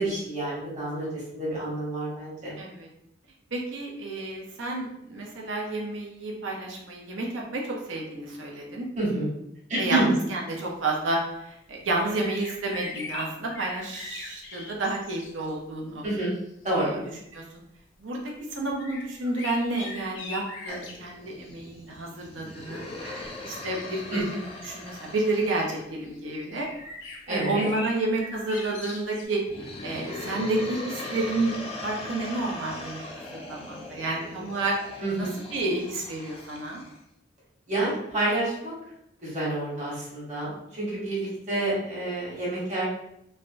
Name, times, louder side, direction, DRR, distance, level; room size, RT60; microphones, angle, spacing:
voice 1, 0.0-2.5 9.0-9.3 9.7-10.1 16.0-16.3 16.6-17.0 24.1-24.2 27.3-27.7 35.0-35.3 37.7-38.7 39.2-42.9, right 2 dB, 40° right, -7 dB, 1.2 m, -28 dB
voice 2, 2.6-2.9 3.5-8.9 9.8-10.0 10.3-16.0 16.8-17.0 17.3-17.4 18.0-18.2 18.5-26.7 27.3-29.4 29.8-31.5 31.8-33.0 33.3-36.8, right 2 dB, 85° right, -1 dB, 0.7 m, -30 dB
sound 1, 12.0-15.5 16.2-16.4 18.8-21.0 23.0-23.4 24.2-24.3 26.0-26.2 26.6-29.2, left 3 dB, 75° left, 0.6 m, -40 dB
sound 2, 20.7-25.9 29.4-37.0, left 2 dB, 30° left, 0.4 m, -40 dB
3.4 x 2.2 x 2.5 m, 0.80 s
head